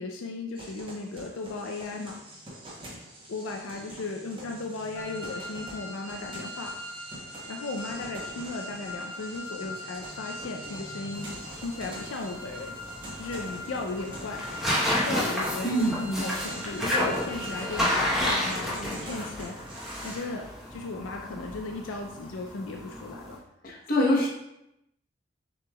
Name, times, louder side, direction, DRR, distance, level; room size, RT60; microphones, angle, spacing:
voice 1, 0.0-2.2 3.3-6.7 7.5-11.3 11.5-12.8 13.2-14.4 14.9-19.8 20.0-23.4 24.0-24.2, left 3 dB, 85° left, 2 dB, 0.4 m, -36 dB
sound 1, 0.6-20.2, right 1 dB, 25° right, 0.9 m, -44 dB
sound 2, 4.9-18.2, left 2 dB, 75° right, 1.2 m, -42 dB
sound 3, 11.1-23.4, left 1 dB, ahead, 0.9 m, -31 dB
voice 2, 15.6-16.2 23.6-24.3, equal, 45° left, -3 dB, 1.0 m, -25 dB
6.7 x 3.1 x 2.3 m, 0.86 s
head